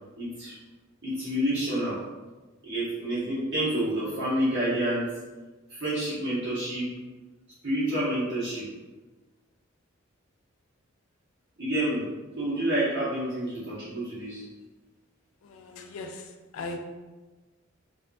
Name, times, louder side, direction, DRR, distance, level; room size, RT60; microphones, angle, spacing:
voice 1, 0.2-0.5 1.0-2.0 2.6-5.1 5.7-6.9 7.6-8.7 11.6-12.1 12.4-14.4, right 1 dB, 60° right, -11 dB, 1.0 m, -28 dB
voice 2, 15.4-16.8, left 3 dB, 90° left, 5 dB, 0.3 m, -39 dB
2.6 x 2.3 x 2.5 m, 1.2 s
head